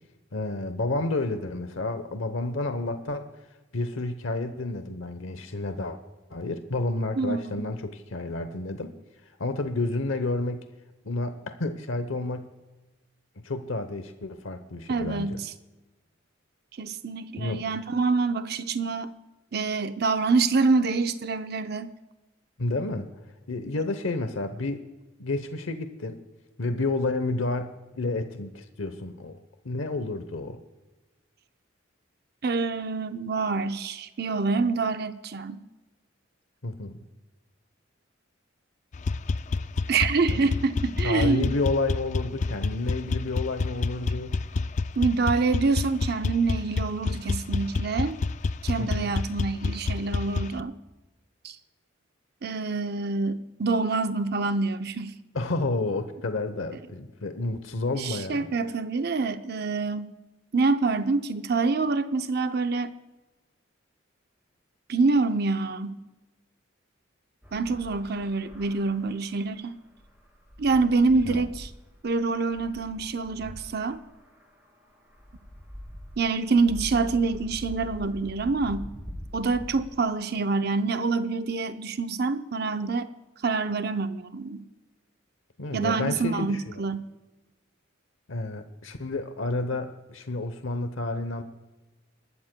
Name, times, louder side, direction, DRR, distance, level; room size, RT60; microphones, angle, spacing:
voice 1, 0.3-3.3 3.7-6.0 6.3-8.9 9.4-10.6 11.0-12.4 13.4-15.4 17.4-17.6 22.6-23.1 23.5-24.8 25.2-26.2 26.6-29.4 29.6-30.6 36.6-37.0 40.3-40.5 41.0-44.4 48.8-49.1 55.3-58.5 71.2-71.4 85.6-86.8 88.3-91.4, left 2 dB, 80° left, 9 dB, 0.9 m, -30 dB
voice 2, 7.2-7.6 14.9-15.5 16.8-19.1 19.5-21.9 32.4-35.6 39.9-41.6 45.0-48.2 48.6-50.7 51.4-51.6 52.4-55.1 57.9-60.1 60.5-62.9 64.9-66.0 67.5-69.8 70.6-71.7 72.0-74.0 76.2-78.9 79.3-83.1 83.4-84.7 85.7-87.1, right 4 dB, 50° right, 9 dB, 0.6 m, -26 dB
sound 1, 38.9-50.6, left 3 dB, 35° left, 0.3 m, -29 dB
sound 2, 67.4-79.9, equal, 10° right, 2.6 m, -44 dB
24.0 x 12.5 x 2.2 m, 1.1 s
head